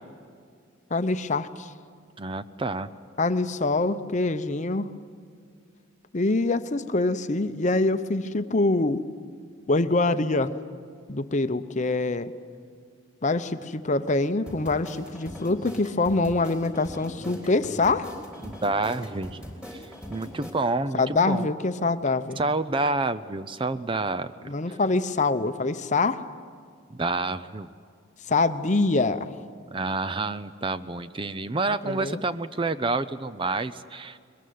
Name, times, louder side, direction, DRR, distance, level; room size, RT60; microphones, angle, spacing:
voice 1, 0.9-1.7 3.2-4.9 6.1-9.0 9.7-10.5 11.1-12.3 13.2-18.1 20.9-22.4 24.5-26.2 28.3-29.3 31.8-32.2, left 3 dB, 35° left, 11 dB, 0.7 m, -25 dB
voice 2, 2.2-2.9 18.4-19.4 19.7-19.8 20.1-21.5 22.4-24.3 24.7-24.8 26.9-27.7 29.7-34.2, right 3 dB, 25° right, 13 dB, 0.5 m, -28 dB
sound 1, 14.5-20.5, equal, 5° right, 3.5 m, -41 dB
22.0 x 21.0 x 9.4 m, 2.2 s
head